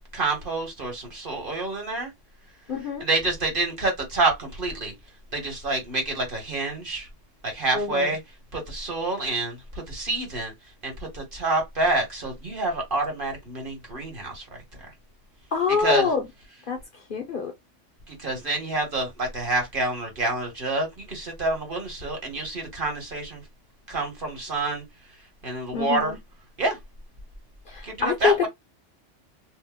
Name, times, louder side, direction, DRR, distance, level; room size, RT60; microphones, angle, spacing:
voice 1, 0.1-2.1 3.0-4.9 5.3-7.1 7.4-8.2 8.5-10.5 10.8-14.4 15.8-16.1 18.1-23.4 23.9-24.8 25.4-26.2 26.6-26.8 27.8-28.5, right 2 dB, 45° right, 1.4 m, -27 dB
voice 2, 2.7-3.1 7.7-8.1 15.5-16.3 16.7-16.8 17.1-17.5 25.7-26.2 27.7-28.5, left 6 dB, 55° left, 0.7 m, -25 dB
2.7 x 2.1 x 3.5 m
omnidirectional pair, 1.2 m